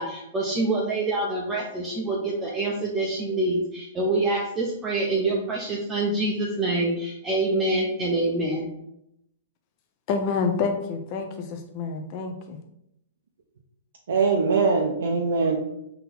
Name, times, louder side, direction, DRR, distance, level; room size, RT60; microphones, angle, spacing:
voice 1, 0.0-8.7, right 2 dB, 15° right, -3 dB, 0.5 m, -26 dB
voice 2, 10.1-12.6, left 5 dB, 35° left, 4 dB, 0.5 m, -28 dB
voice 3, 14.1-15.6, right 4 dB, 85° right, -1 dB, 0.6 m, -22 dB
3.9 x 2.8 x 4.1 m, 0.79 s
hypercardioid pair, 160°, 0 cm